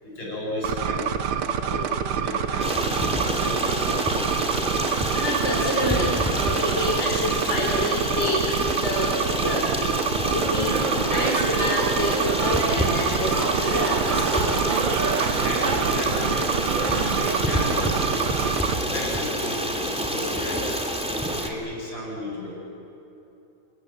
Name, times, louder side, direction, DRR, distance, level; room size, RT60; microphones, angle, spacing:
voice 1, 0.0-1.1 1.5-1.8 2.1-4.2 15.3-16.4 16.8-17.9 18.7-20.6 21.2-22.6, left 1 dB, 60° left, -3 dB, 8.6 m, -33 dB
sound 1, 0.6-18.8, right 8 dB, 85° right, 2.0 m, -27 dB
Stream, 2.6-21.5, equal, 5° right, 2.2 m, -27 dB
voice 2, 5.1-14.5, left 1 dB, 30° left, -2 dB, 3.9 m, -28 dB
sound 2, 10.2-17.4, right 4 dB, 55° right, 0.5 m, -30 dB
28.0 x 26.0 x 7.6 m, 2.9 s
omnidirectional pair, 2.3 m